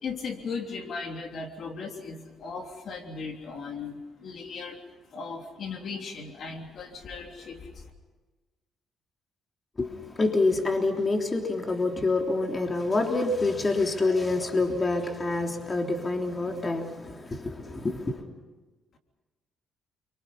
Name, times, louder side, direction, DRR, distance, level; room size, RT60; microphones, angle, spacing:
voice 1, 0.0-4.8 5.1-7.8, left 4 dB, 60° left, 3.2 m, -37 dB
voice 2, 9.8-18.3, left 3 dB, 30° left, 3.4 m, -27 dB
29.5 x 24.5 x 5.6 m
cardioid pair, 90°, 0 cm